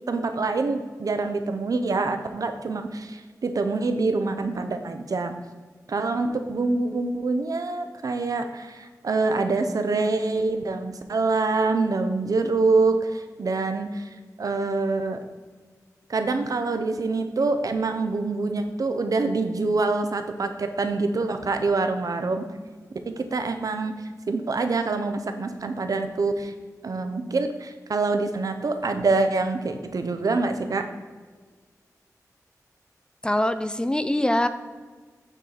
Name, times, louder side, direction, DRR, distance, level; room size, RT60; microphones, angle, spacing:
voice 1, 0.1-5.3 5.9-14.1 14.4-15.2 16.1-22.4 23.1-23.9 24.3-26.5 26.8-30.8, right 3 dB, 70° right, 7 dB, 0.7 m, -25 dB
voice 2, 33.2-34.5, left 1 dB, 15° left, 11 dB, 0.4 m, -23 dB
9.0 x 4.5 x 4.0 m, 1.5 s
wide cardioid pair, 75°, 6 cm